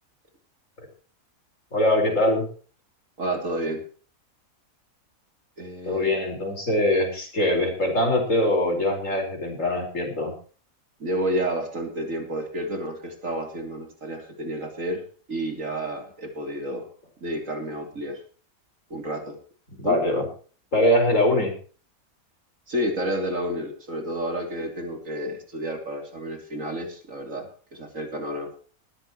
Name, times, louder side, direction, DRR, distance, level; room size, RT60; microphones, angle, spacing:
voice 1, 1.7-2.5 5.9-10.3 19.8-20.3 20.7-21.5, left 1 dB, 60° left, 2 dB, 5.0 m, -22 dB
voice 2, 3.2-3.8 5.6-6.2 11.0-15.0 15.3-16.9 17.2-18.2 18.9-19.4 19.8-20.0 22.7-28.6, right 1 dB, 65° right, 3 dB, 3.4 m, -30 dB
19.5 x 14.0 x 3.1 m, 0.40 s
omnidirectional pair, 1.5 m